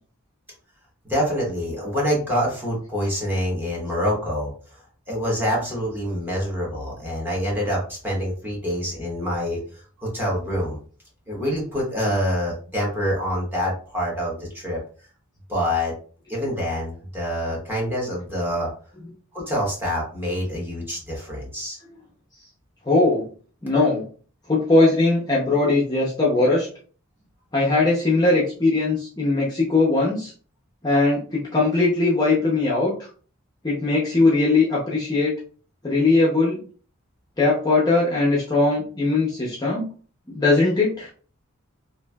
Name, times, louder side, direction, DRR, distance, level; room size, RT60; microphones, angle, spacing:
voice 1, 1.0-4.8 5.1-10.8 11.3-14.8 15.5-15.9 16.3-18.7 19.3-21.8, equal, 10° right, -4 dB, 1.0 m, -26 dB
voice 2, 22.8-23.2 23.6-24.0 24.5-26.7 27.5-30.3 30.8-33.1 33.6-35.3 35.8-36.6 37.4-39.9 40.3-41.1, left 2 dB, 20° left, -5 dB, 0.6 m, -20 dB
3.0 x 2.6 x 2.2 m, 0.41 s
head